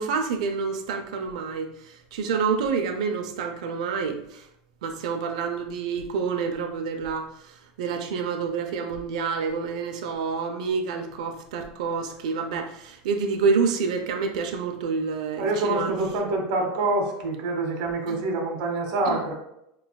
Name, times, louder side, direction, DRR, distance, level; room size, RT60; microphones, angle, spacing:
voice 1, 0.0-4.5 4.8-15.9 18.1-18.2 19.1-19.2, right 5 dB, 75° right, 4 dB, 0.6 m, -28 dB
voice 2, 15.4-19.3, right 2 dB, 45° right, 1 dB, 1.2 m, -26 dB
6.8 x 3.2 x 2.3 m, 0.79 s
supercardioid pair, 180°, 4 cm